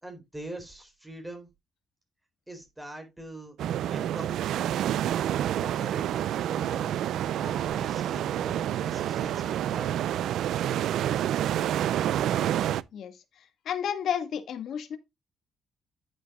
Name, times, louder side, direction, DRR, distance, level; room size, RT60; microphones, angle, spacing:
voice 1, 0.0-1.5 2.5-3.5 3.9-4.4 5.5-7.0 7.4-10.1, right 1 dB, 10° right, 4.1 m, -43 dB
sound 1, 3.6-12.8, right 11 dB, 75° right, 0.5 m, -28 dB
voice 2, 12.9-15.0, left 8 dB, 70° left, 1.9 m, -32 dB
10.5 x 9.2 x 2.4 m
cardioid pair, 90°, 0 cm